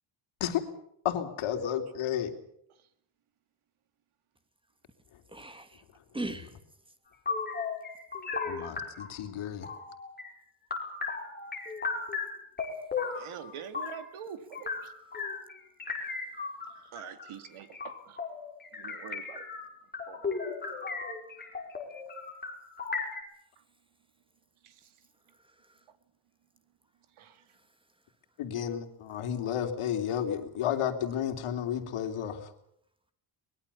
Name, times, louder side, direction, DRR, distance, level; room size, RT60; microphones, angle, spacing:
voice 1, 1.0-2.3 8.4-9.7 28.4-32.5, left 9 dB, 75° left, 3.4 m, -32 dB
voice 2, 5.3-5.8 6.1-6.6 16.0-16.3 25.3-25.8 27.5-27.7, right 2 dB, 10° right, 2.4 m, -41 dB
sound 1, 7.3-9.1 9.6-10.3 10.7-14.1 14.5-23.2, left 4 dB, 20° left, 5.2 m, -36 dB
voice 3, 13.1-14.9 16.9-18.2 18.7-19.5 20.1-20.4 24.6-24.9 27.2-27.4, right 8 dB, 75° right, 2.4 m, -45 dB
23.5 x 21.5 x 7.1 m
cardioid pair, 150°, 50 cm